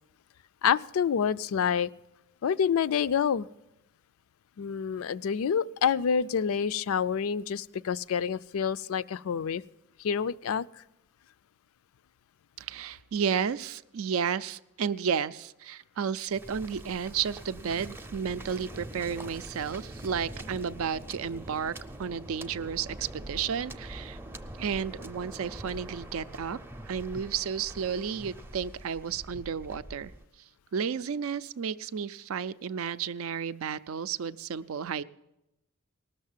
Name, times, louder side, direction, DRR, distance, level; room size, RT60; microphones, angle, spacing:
voice 1, 0.6-1.9 2.4-3.5 4.6-9.6 10.0-10.8, left 7 dB, 85° left, 17 dB, 0.4 m, -27 dB
voice 2, 12.6-24.2 24.6-26.6 26.9-30.1 30.7-35.0, right 7 dB, 80° right, 15 dB, 0.4 m, -32 dB
Waves surf, 16.3-30.2, right 1 dB, 10° right, 0.5 m, -44 dB
18.5 x 6.7 x 7.3 m, 0.92 s
head